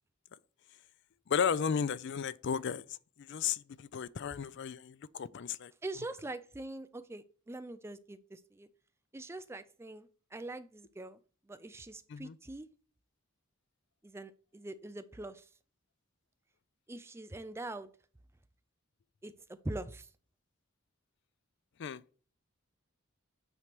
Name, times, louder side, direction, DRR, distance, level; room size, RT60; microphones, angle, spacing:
voice 1, 1.3-5.7 12.1-12.4 21.8-22.0, left 7 dB, 55° left, 0.4 m, -34 dB
voice 2, 5.8-8.7 9.1-11.2 11.5-12.7 14.0-15.5 16.9-17.9 19.2-19.3 19.6-20.1, right 2 dB, 10° right, 0.4 m, -43 dB
9.0 x 3.2 x 5.8 m
head